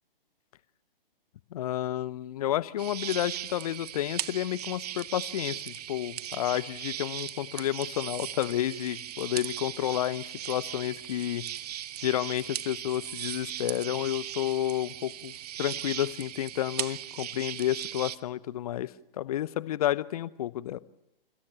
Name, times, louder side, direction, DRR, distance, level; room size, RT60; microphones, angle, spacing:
voice 1, 1.5-11.5 12.0-20.8, left 12 dB, 40° left, 19 dB, 0.9 m, -31 dB
sound 1, 2.8-18.2, right 11 dB, 45° right, 0.9 m, -38 dB
27.0 x 17.0 x 7.5 m, 0.89 s
figure-of-eight pair, 125°, 29 cm